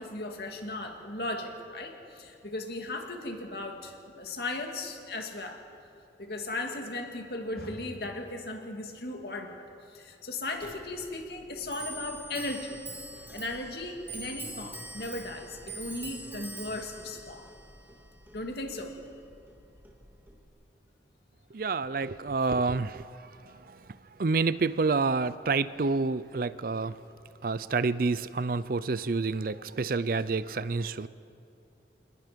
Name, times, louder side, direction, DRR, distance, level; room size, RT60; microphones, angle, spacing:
voice 1, 0.0-5.6 6.2-9.6 9.9-12.8 13.3-17.5 18.3-19.0, left 2 dB, 60° left, 3 dB, 2.4 m, -37 dB
Clock, 10.6-20.5, right 2 dB, 10° right, 2.4 m, -44 dB
voice 2, 21.5-23.2 23.7-23.8 24.2-27.0 27.4-31.1, right 4 dB, 50° right, 16 dB, 0.5 m, -28 dB
27.5 x 20.0 x 5.2 m, 2.7 s
head